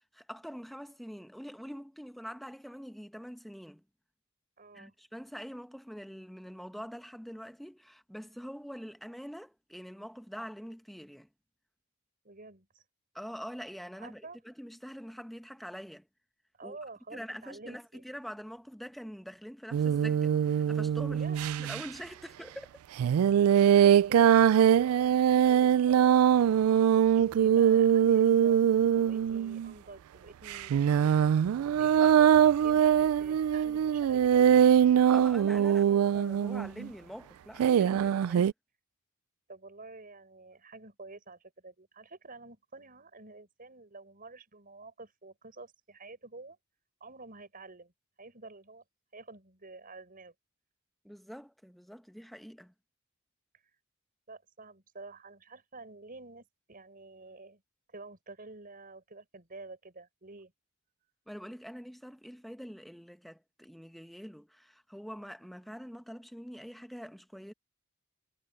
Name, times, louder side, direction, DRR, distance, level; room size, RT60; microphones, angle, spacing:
voice 1, 0.0-3.8 4.7-11.3 13.1-16.1 16.6-16.8 17.1-21.2 21.6-22.8 23.5-23.6 32.0-32.2 35.1-35.8 36.1-38.5 51.0-52.7 61.3-67.5, equal, ahead, 1.2 m, -45 dB
voice 2, 4.6-4.9 12.2-12.8 14.0-14.4 16.5-18.0 21.1-21.4 23.4-26.5 27.1-28.6 28.9-31.4 31.7-32.1 32.4-32.9 33.2-34.5 35.7-36.0 39.5-46.6 47.0-47.9 48.2-48.8 49.1-50.3 54.3-57.6 57.9-60.5, right 3 dB, 40° right, 6.3 m, -49 dB
sound 1, 19.7-21.8 23.0-29.7 30.5-36.9 37.6-38.5, right 9 dB, 90° right, 0.3 m, -23 dB
head